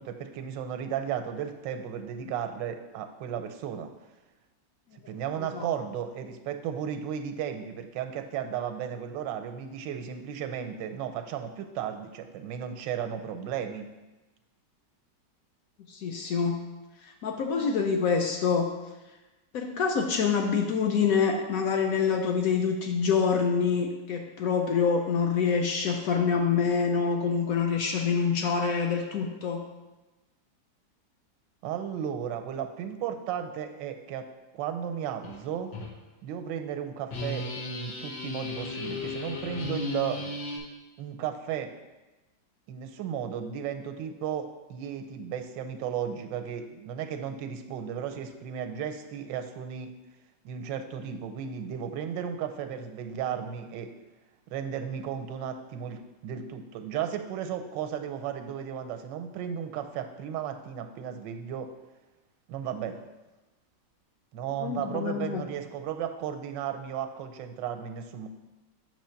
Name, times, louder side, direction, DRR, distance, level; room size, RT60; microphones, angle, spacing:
voice 1, 0.0-3.9 5.1-13.9 31.6-34.3 34.5-35.7 36.2-40.2 41.0-41.7 42.7-49.9 50.4-53.9 54.5-61.7 62.5-63.0 64.3-68.3, right 8 dB, 85° right, 7 dB, 1.3 m, -34 dB
voice 2, 15.9-16.6 17.0-18.7 19.5-29.6 64.6-65.4, left 6 dB, 70° left, 3 dB, 0.9 m, -26 dB
sound 1, 35.2-35.4 35.7-35.9 37.1-40.6, left 3 dB, 85° left, 1.6 m, -35 dB
7.2 x 3.1 x 5.6 m, 1.1 s
omnidirectional pair, 1.9 m